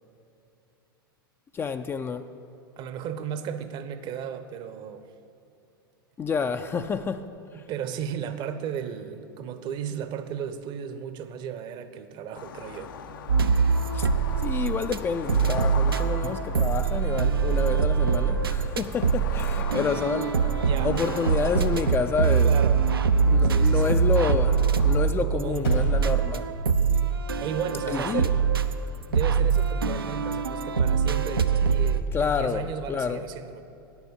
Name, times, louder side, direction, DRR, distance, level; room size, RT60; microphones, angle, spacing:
voice 1, 1.5-2.3 6.2-7.3 13.9-14.1 14.4-20.5 20.8-22.5 23.3-26.5 27.9-28.3 32.1-33.2, left 6 dB, 20° left, 0.3 m, -29 dB
voice 2, 2.8-5.1 7.5-12.9 20.6-21.0 22.4-22.9 23.4-24.0 25.2-25.7 27.0-28.4 29.1-33.6, right 8 dB, 40° right, 0.7 m, -35 dB
sound 1, 12.3-25.1, left 8 dB, 65° left, 0.6 m, -41 dB
sound 2, 13.3-15.0 15.3-32.0, right 5 dB, 80° right, 0.5 m, -23 dB
sound 3, 25.6-30.3, left 1 dB, 80° left, 3.0 m, -44 dB
9.3 x 7.1 x 8.3 m
figure-of-eight pair, 90°, 12 cm